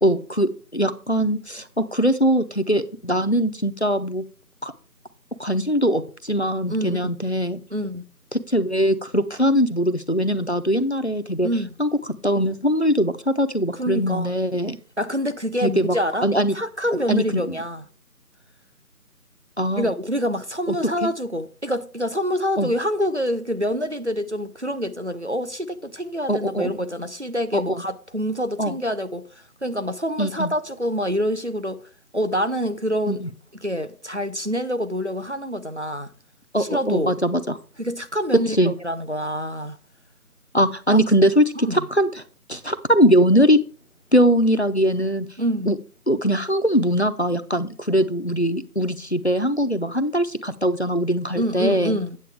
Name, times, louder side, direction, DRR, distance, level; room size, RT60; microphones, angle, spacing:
voice 1, 0.0-4.2 4.6-4.7 5.4-7.6 8.3-11.5 11.8-11.9 12.2-14.8 15.6-16.0 16.2-16.6 17.1-17.6 19.6-19.9 20.7-20.8 21.0-21.1 22.6-22.7 26.3-26.7 27.5-27.8 28.6-28.8 30.2-30.5 33.1-33.3 36.5-37.5 38.6-38.7 40.5-42.1 42.5-43.6 44.1-45.3 45.7-45.8 46.1-52.0, equal, 45° left, 0.5 m, -21 dB
voice 2, 6.7-7.0 7.7-8.0 11.4-11.7 13.7-14.3 15.0-16.3 16.5-17.8 19.8-29.2 29.6-31.8 32.1-33.2 33.6-36.1 36.6-37.2 37.8-39.8 40.9-41.0 41.6-41.9 45.4-45.7 51.4-52.2, equal, 50° right, 0.5 m, -26 dB
8.5 x 8.1 x 3.4 m
figure-of-eight pair, 175°, 46 cm